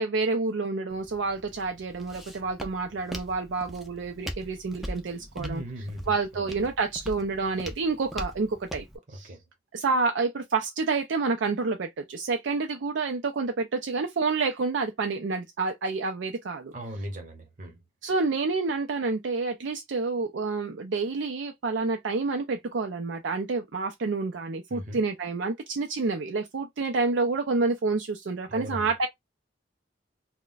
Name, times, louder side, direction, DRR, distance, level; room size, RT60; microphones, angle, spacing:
voice 1, 0.0-5.6 6.1-8.9 9.1-9.3 9.7-16.7 18.0-29.1, right 4 dB, 70° right, 0.4 m, -28 dB
Walk footsteps, 0.9-9.0, equal, ahead, 0.4 m, -41 dB
voice 2, 5.2-6.5 9.1-9.4 16.7-17.8 24.7-25.0 28.4-28.9, equal, 40° right, 0.9 m, -38 dB
2.4 x 2.1 x 3.8 m
head